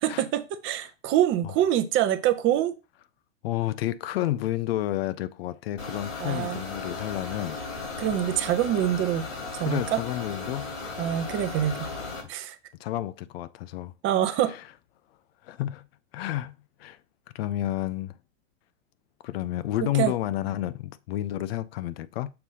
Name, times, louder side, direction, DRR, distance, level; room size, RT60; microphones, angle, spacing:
voice 1, 0.0-2.7 6.2-6.6 8.0-9.2 9.5-10.0 11.0-11.9 12.3-12.6 14.0-14.5 20.0-20.1, right 11 dB, 30° right, 0.7 m, -25 dB
voice 2, 3.4-7.6 9.6-10.7 12.8-13.9 14.3-14.6 15.4-15.9 16.1-16.5 16.8-17.0 17.3-18.1 19.2-22.3, left 14 dB, 50° left, 0.5 m, -30 dB
sound 1, 5.8-12.2, left 3 dB, 75° left, 3.0 m, -36 dB
6.6 x 2.7 x 5.4 m
hypercardioid pair, 105°, 39 cm